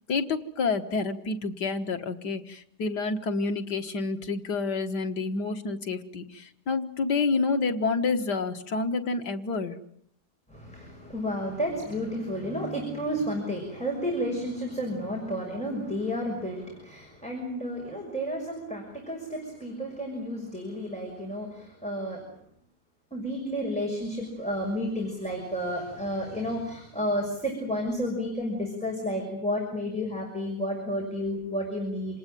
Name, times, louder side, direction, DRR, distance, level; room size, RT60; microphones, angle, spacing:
voice 1, 0.1-9.8, left 4 dB, 85° left, 7 dB, 2.2 m, -28 dB
voice 2, 10.5-22.2 23.1-32.2, equal, 5° left, -1 dB, 6.2 m, -31 dB
28.0 x 19.0 x 9.1 m, 0.71 s
omnidirectional pair, 1.8 m